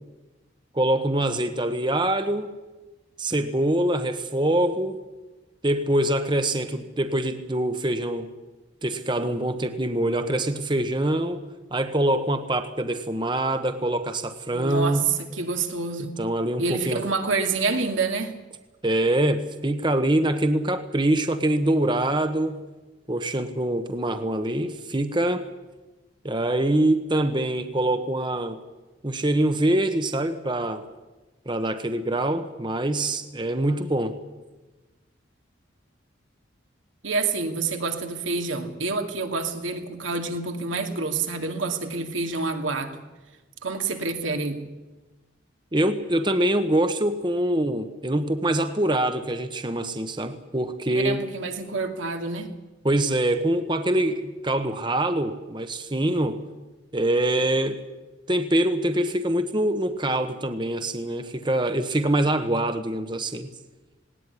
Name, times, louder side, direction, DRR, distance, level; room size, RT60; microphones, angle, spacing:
voice 1, 0.7-2.5 3.2-5.0 5.6-8.3 8.8-11.4 11.7-15.1 16.0-17.0 18.8-22.6 23.1-25.5 26.2-28.6 29.0-30.9 31.5-34.2 45.7-51.2 52.8-56.4 56.9-57.8 58.3-63.5, right 1 dB, 25° right, 9 dB, 1.1 m, -24 dB
voice 2, 14.5-16.1 16.6-18.4 37.0-43.0 43.6-44.7 50.9-52.5, right 4 dB, 85° right, 5 dB, 2.6 m, -28 dB
19.0 x 18.5 x 9.9 m, 1.2 s
head